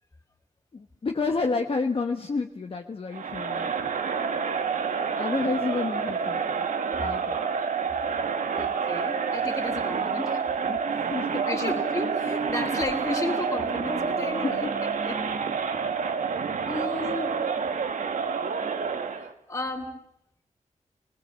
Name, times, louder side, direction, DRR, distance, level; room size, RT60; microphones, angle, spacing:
voice 1, 0.7-3.7 5.2-6.7 7.0-7.5 10.7-11.7 14.4-14.7 15.0-15.1, left 4 dB, 45° left, 3 dB, 1.4 m, -30 dB
Crowd, 3.1-19.3, right 6 dB, 85° right, 1.5 m, -28 dB
voice 2, 8.6-10.4 11.4-14.7 15.0-15.2 16.6-17.3 19.2-19.9, left 2 dB, 25° left, 2 dB, 4.2 m, -33 dB
29.0 x 20.0 x 7.7 m, 0.80 s
wide cardioid pair, 130°, 13 cm